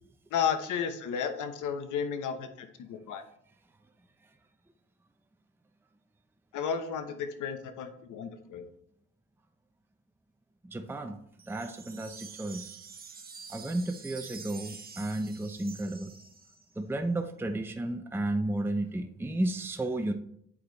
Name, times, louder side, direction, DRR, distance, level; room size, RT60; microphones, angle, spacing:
voice 1, 0.3-3.2 6.5-8.6, left 7 dB, 80° left, 8 dB, 1.1 m, -33 dB
voice 2, 10.7-11.2 11.5-12.8 13.5-16.1 16.8-20.1, right 1 dB, 5° right, 6 dB, 0.6 m, -33 dB
sound 1, 11.4-16.8, right 5 dB, 30° right, 1.1 m, -48 dB
8.5 x 5.0 x 4.0 m, 0.70 s
cardioid pair, 90°, 30 cm